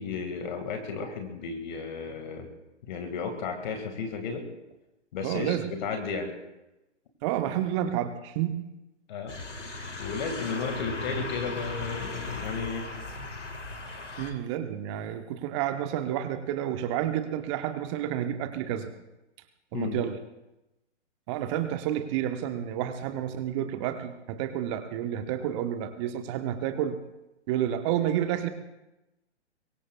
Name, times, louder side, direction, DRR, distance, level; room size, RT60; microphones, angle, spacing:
voice 1, 0.0-2.5 2.8-4.5 5.1-6.3 9.1-9.4 10.0-12.9 14.1-14.3 19.7-20.0, left 5 dB, 40° left, 5 dB, 2.2 m, -34 dB
voice 2, 5.2-5.7 7.2-8.6 14.2-18.9 19.7-20.2 21.3-27.0 27.5-28.5, right 11 dB, 25° right, 8 dB, 1.2 m, -30 dB
sound 1, 9.3-14.3, left 3 dB, 80° left, 2.1 m, -37 dB
25.0 x 22.5 x 2.4 m, 0.97 s
figure-of-eight pair, 120°, 36 cm